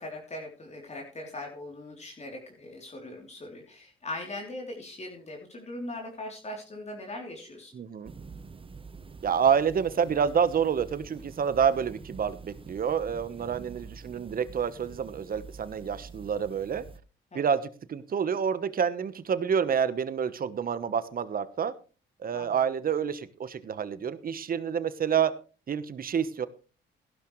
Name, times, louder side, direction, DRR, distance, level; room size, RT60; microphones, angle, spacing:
voice 1, 0.0-7.7 13.5-13.6 17.3-17.4 22.3-22.6, left 1 dB, 35° left, 0 dB, 3.5 m, -40 dB
voice 2, 7.7-8.1 9.2-16.8 17.3-21.7 22.2-25.3 25.7-26.5, right 7 dB, 45° right, 14 dB, 1.2 m, -28 dB
sound 1, 8.0-17.0, right 4 dB, 25° right, 1.0 m, -47 dB
16.0 x 12.0 x 3.2 m, 0.35 s
cardioid pair, 90°, 20 cm